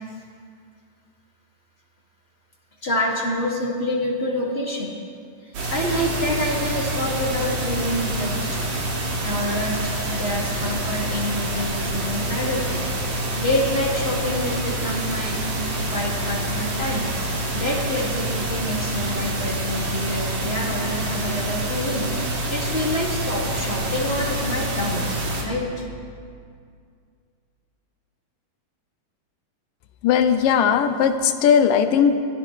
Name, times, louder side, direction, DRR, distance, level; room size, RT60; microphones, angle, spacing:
voice 1, 2.8-4.9 5.4-8.6 9.2-9.8 10.1-12.8 13.1-15.4 15.9-17.1 17.5-25.2 25.4-25.9, left 1 dB, 20° left, -4 dB, 2.1 m, -27 dB
sound 1, 5.5-25.4, right 1 dB, 65° right, 3.8 m, -27 dB
voice 2, 30.0-32.2, left 7 dB, 80° left, 7 dB, 2.5 m, -18 dB
24.5 x 16.0 x 3.3 m, 2.2 s
omnidirectional pair, 4.0 m